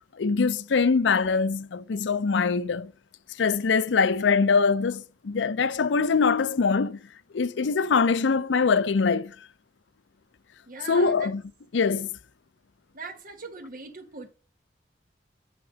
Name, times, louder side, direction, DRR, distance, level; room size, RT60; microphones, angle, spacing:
voice 1, 0.2-2.9 3.4-7.0 7.3-9.4 10.9-11.4 11.7-12.1, left 5 dB, 90° left, 0.5 m, -23 dB
voice 2, 10.7-11.3 12.9-14.3, right 4 dB, 50° right, 1.4 m, -40 dB
8.1 x 5.9 x 5.1 m
head